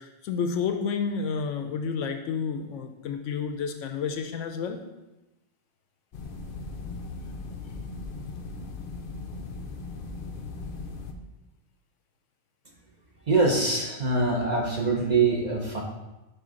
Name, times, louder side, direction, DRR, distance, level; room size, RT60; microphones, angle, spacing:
voice 1, 0.0-4.8, left 6 dB, 75° left, 6 dB, 0.9 m, -30 dB
sound 1, 6.1-11.1, left 3 dB, 55° left, 0.6 m, -38 dB
voice 2, 13.3-15.8, right 3 dB, 40° right, -1 dB, 0.8 m, -24 dB
5.6 x 5.1 x 3.7 m, 1.0 s
omnidirectional pair, 1.4 m